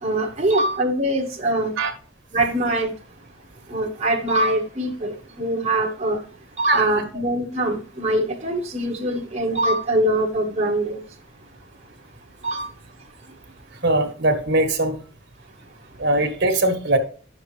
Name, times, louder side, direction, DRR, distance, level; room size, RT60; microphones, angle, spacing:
voice 1, 0.0-1.7 2.3-2.9 3.7-6.2 6.6-11.0 12.4-12.7, right 1 dB, 35° right, 1.1 m, -23 dB
voice 2, 13.8-15.0 16.0-17.0, right 2 dB, 60° right, 1.5 m, -20 dB
9.5 x 6.6 x 3.3 m
head